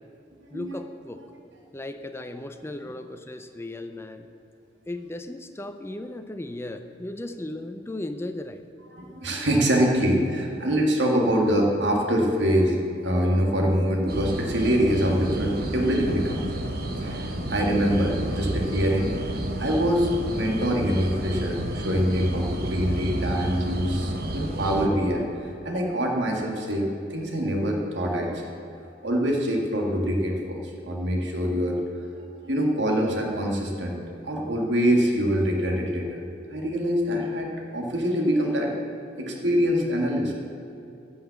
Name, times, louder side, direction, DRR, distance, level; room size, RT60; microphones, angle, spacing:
voice 1, 0.5-1.2 1.7-4.3 4.9-8.7, left 1 dB, 15° left, 8 dB, 0.5 m, -36 dB
voice 2, 9.0-12.8 13.0-16.4 17.0-19.1 19.6-25.2 25.7-28.5 29.0-31.8 32.4-36.2 36.5-38.7 39.2-40.3, equal, 90° right, 0 dB, 1.8 m, -24 dB
sound 1, 14.1-24.9, right 1 dB, 60° right, 1.1 m, -31 dB
13.5 x 5.6 x 8.3 m, 2.7 s
head